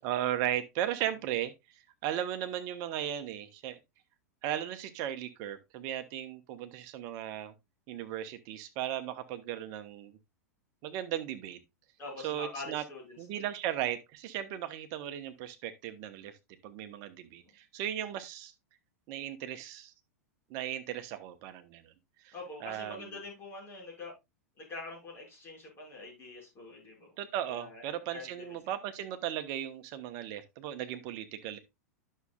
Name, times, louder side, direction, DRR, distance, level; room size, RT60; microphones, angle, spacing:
voice 1, 0.0-1.5 2.0-3.8 4.4-7.5 7.9-10.2 10.8-11.6 12.2-12.8 13.2-16.4 16.6-18.5 19.1-19.9 20.5-21.9 22.2-22.3 22.6-23.2 27.2-31.6, right 11 dB, 45° right, 1.1 m, -36 dB
voice 2, 12.0-13.5 22.3-24.1 24.6-27.1 27.5-28.6, left 3 dB, 25° left, 5.7 m, -45 dB
11.0 x 6.5 x 2.4 m
figure-of-eight pair, 95°, 9 cm